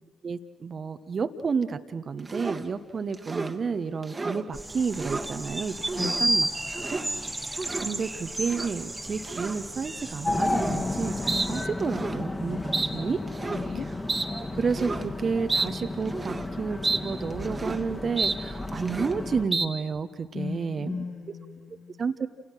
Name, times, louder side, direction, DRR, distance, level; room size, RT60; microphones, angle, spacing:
voice 1, 0.2-6.5 6.9-13.2 14.3-21.0 22.0-22.3, right 5 dB, 45° right, 10 dB, 1.3 m, -31 dB
sound 1, 2.3-2.7 3.1-3.6 4.0-4.4 4.8-5.3 5.8-6.2 6.6-7.1 7.4-7.9 8.4-8.7 9.2-9.6 10.4-10.8 11.3-11.5 11.8-12.2 12.7-12.9 13.3-13.7 14.1-14.3 14.7-15.0 15.5-15.7 16.1-16.5 16.8-17.0 17.3-17.8 18.2-18.4 18.7-19.2 19.5-19.7, right 3 dB, 30° right, 1.9 m, -31 dB
sound 2, 4.5-11.7, right 1 dB, 15° right, 1.6 m, -33 dB
voice 2, 6.0-6.3 13.5-13.9 20.3-22.0, left 5 dB, 55° left, 2 dB, 2.6 m, -36 dB
sound 3, 10.2-19.4, left 2 dB, 25° left, 2.9 m, -33 dB
29.0 x 29.0 x 6.3 m, 1.3 s
figure-of-eight pair, 40°, 0 cm